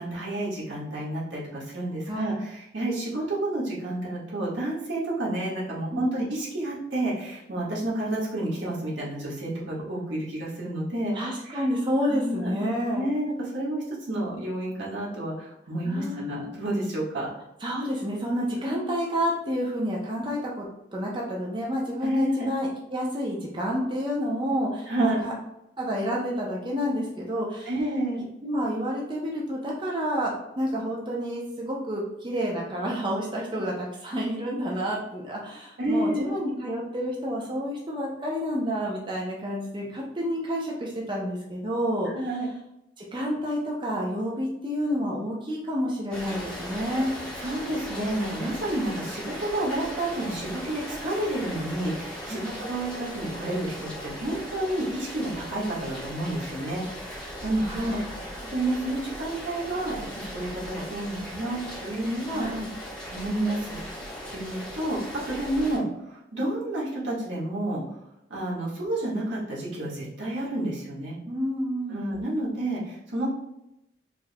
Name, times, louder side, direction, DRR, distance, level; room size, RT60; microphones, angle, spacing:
voice 1, 0.0-11.1 11.5-11.6 12.1-12.7 12.9-17.3 18.7-18.8 22.0-22.5 24.9-25.3 27.6-28.2 35.8-36.4 42.1-42.5 47.4-62.5 63.1-63.8 64.3-67.8 68.3-71.2 71.9-73.3, right 1 dB, 85° right, -6 dB, 1.5 m, -30 dB
voice 2, 5.9-6.3 11.1-13.0 15.8-16.5 17.6-20.7 20.9-25.3 25.8-27.7 28.4-42.1 43.0-47.1 52.3-52.6 57.6-58.3 62.3-62.7 71.3-72.0, equal, 25° right, -3 dB, 0.6 m, -29 dB
Rain, 46.1-65.8, equal, 5° left, 1.1 m, -38 dB
4.6 x 3.1 x 2.2 m, 0.86 s
head